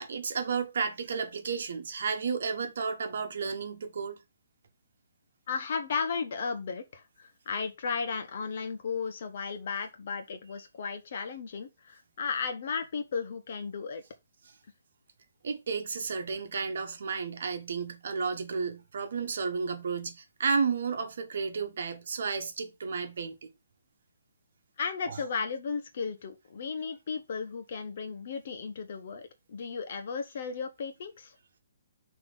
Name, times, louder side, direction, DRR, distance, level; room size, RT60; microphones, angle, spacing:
voice 1, 0.0-4.2 15.4-23.5 25.0-25.2, right 5 dB, 55° right, 1.3 m, -32 dB
voice 2, 5.5-14.0 24.8-31.3, left 5 dB, 45° left, 1.1 m, -35 dB
6.0 x 3.1 x 5.4 m
hypercardioid pair, 170°, 0 cm